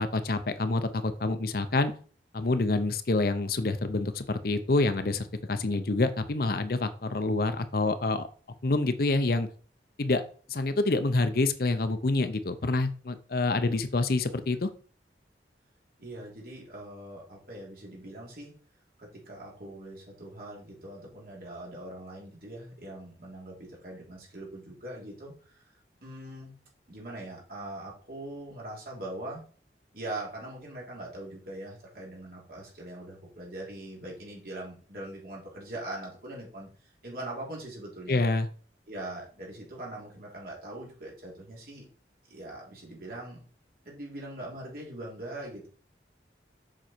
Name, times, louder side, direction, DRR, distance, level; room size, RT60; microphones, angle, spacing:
voice 1, 0.0-1.9 2.3-8.3 8.6-9.5 10.0-10.2 10.5-14.7 38.1-38.5, left 2 dB, 55° left, 10 dB, 0.7 m, -27 dB
voice 2, 13.4-13.8 16.0-18.5 19.0-25.6 26.0-26.5 26.9-29.4 29.9-38.2 38.9-41.8 42.3-43.4 43.8-45.7, right 1 dB, 55° right, -3 dB, 3.5 m, -42 dB
7.5 x 5.3 x 4.5 m, 0.41 s
head